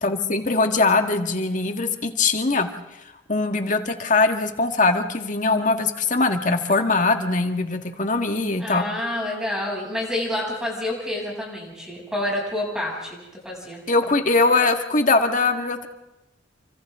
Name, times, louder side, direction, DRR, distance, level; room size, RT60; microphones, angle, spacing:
voice 1, 0.0-2.7 3.3-8.9 13.9-15.9, left 3 dB, 45° left, 5 dB, 1.9 m, -21 dB
voice 2, 8.6-13.2 13.4-13.8, left 1 dB, 5° right, -3 dB, 7.7 m, -28 dB
29.5 x 25.5 x 3.8 m, 1.0 s
head